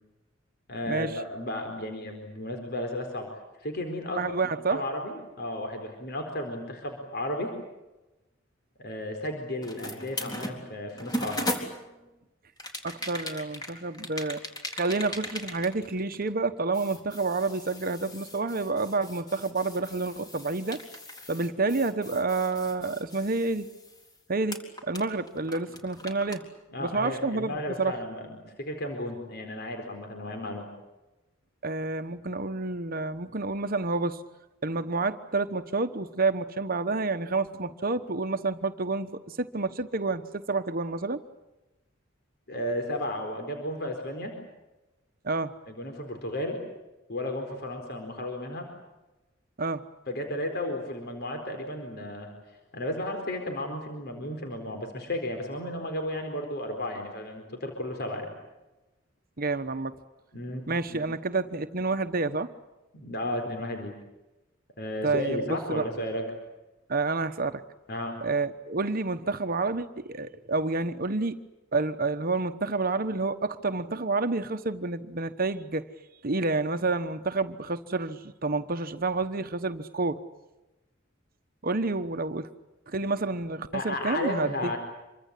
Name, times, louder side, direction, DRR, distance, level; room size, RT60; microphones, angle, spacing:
voice 1, 0.7-3.3 3.6-4.3 4.7-7.5 8.8-11.4 26.7-30.7 42.5-44.3 45.7-46.6 47.1-48.7 50.1-52.3 52.7-58.3 60.3-61.0 62.9-63.9 64.8-66.2 67.9-68.2 83.7-84.8, left 1 dB, 55° left, 4 dB, 4.4 m, -33 dB
voice 2, 4.2-4.8 12.8-14.4 14.7-20.8 21.3-23.7 24.3-26.4 26.8-28.0 31.6-34.2 34.6-41.2 45.2-45.5 49.6-49.8 59.4-60.0 60.7-62.5 65.0-65.8 66.9-67.6 68.2-71.4 71.7-75.8 76.2-80.2 81.6-82.5 82.9-84.8, right 3 dB, 50° right, 9 dB, 1.1 m, -29 dB
sound 1, 9.6-12.1 12.6-16.5 16.7-24.2 24.5-26.4, left 1 dB, 20° left, 4.0 m, -38 dB
27.0 x 24.0 x 8.4 m, 1.0 s
head